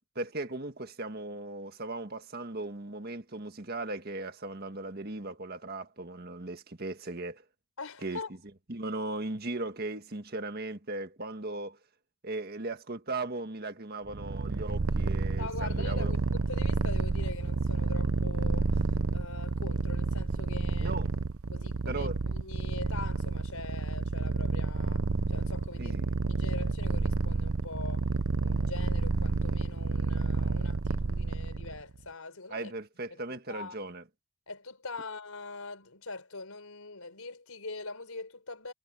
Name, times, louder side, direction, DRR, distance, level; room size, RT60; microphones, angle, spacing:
voice 1, 0.2-7.4 8.0-8.2 8.7-11.8 12.2-16.1 20.8-21.1 21.6-22.2 25.8-26.1 32.5-34.0, right 2 dB, 45° right, 1.7 m, -37 dB
voice 2, 7.8-8.3 15.4-18.8 19.1-20.9 21.5-26.0 26.3-28.1 28.4-32.7 33.1-33.8 34.5-38.7, left 3 dB, 85° left, 4.5 m, -42 dB
Purr, 14.1-31.8, right 3 dB, 80° right, 0.7 m, -30 dB
head